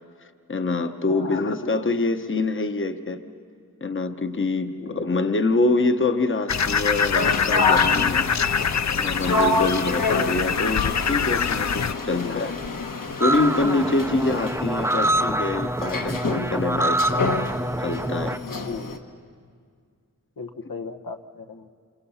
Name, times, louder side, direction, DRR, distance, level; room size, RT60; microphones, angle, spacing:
voice 1, 0.5-3.2 3.8-8.3 8.9-12.5 13.2-17.2 17.8-18.4, left 3 dB, 35° left, 8 dB, 1.0 m, -25 dB
voice 2, 1.0-1.6 4.8-5.1 12.1-12.5 18.6-19.0 20.4-21.7, left 5 dB, 85° left, 4 dB, 1.2 m, -37 dB
sound 1, 6.5-11.9, left 6 dB, 55° left, 0.6 m, -24 dB
sound 2, 7.2-19.0, left 3 dB, 70° left, 1.5 m, -28 dB
sound 3, 13.2-18.4, right 1 dB, 10° right, 0.6 m, -25 dB
29.0 x 27.5 x 5.7 m, 2.1 s
wide cardioid pair, 95°, 34 cm